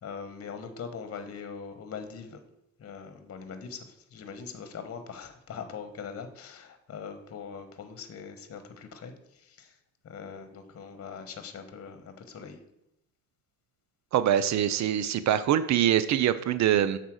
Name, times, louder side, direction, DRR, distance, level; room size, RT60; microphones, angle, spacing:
voice 1, 0.0-2.4 2.8-3.8 4.1-9.1 9.4-9.7 10.0-12.6, left 6 dB, 50° left, 8 dB, 1.1 m, -41 dB
voice 2, 14.1-17.0, right 10 dB, 65° right, 14 dB, 0.5 m, -24 dB
7.1 x 4.1 x 6.3 m, 0.82 s
cardioid pair, 90°, 30 cm